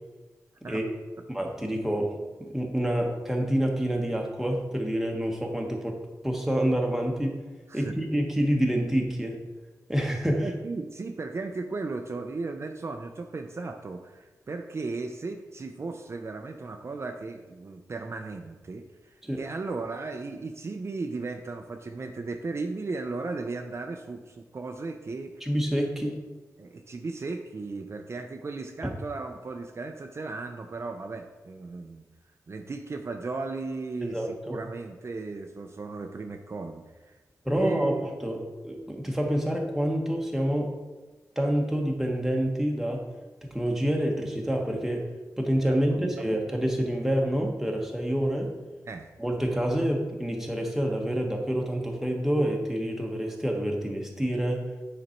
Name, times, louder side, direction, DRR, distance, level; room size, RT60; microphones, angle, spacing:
voice 1, 1.3-5.9 6.2-7.3 7.7-9.4 9.9-10.5 19.2-19.4 25.4-26.2 34.0-34.6 37.4-40.8 41.4-43.0 43.4-45.1 45.4-48.5 49.2-54.8, equal, 5° right, 1 dB, 1.1 m, -27 dB
voice 2, 10.4-25.3 26.6-32.0 32.5-37.1 37.5-38.0 45.7-46.3 48.9-49.1, right 3 dB, 45° right, 4 dB, 0.5 m, -36 dB
8.9 x 4.0 x 4.4 m, 1.2 s
wide cardioid pair, 120°, 6 cm